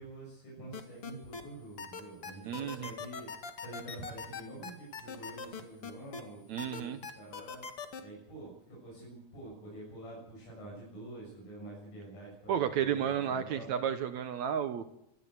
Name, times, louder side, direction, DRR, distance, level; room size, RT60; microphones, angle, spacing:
voice 1, 0.0-3.3 3.6-7.6 8.0-13.7, right 1 dB, 85° left, -5 dB, 8.6 m, -47 dB
sound 1, 0.7-1.4 1.8-6.2 6.6-8.0, left 6 dB, 50° left, 2.7 m, -41 dB
voice 2, 2.4-2.9 6.5-7.0 12.5-14.9, right 9 dB, 70° right, 10 dB, 2.2 m, -32 dB
25.0 x 13.5 x 8.2 m, 0.79 s
omnidirectional pair, 3.6 m